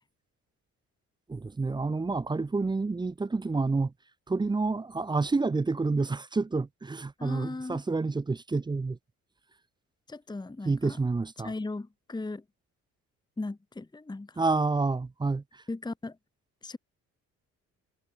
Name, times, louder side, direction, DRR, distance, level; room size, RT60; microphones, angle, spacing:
voice 1, 1.3-3.9 4.3-9.0 10.6-11.5 14.4-15.4, right 3 dB, 10° right, 0.6 m, -28 dB
voice 2, 7.2-7.8 10.1-11.0 11.4-12.4 13.4-14.4 15.7-16.2 16.6-16.8, left 2 dB, 10° left, 1.2 m, -37 dB
figure-of-eight pair, 45°, 42 cm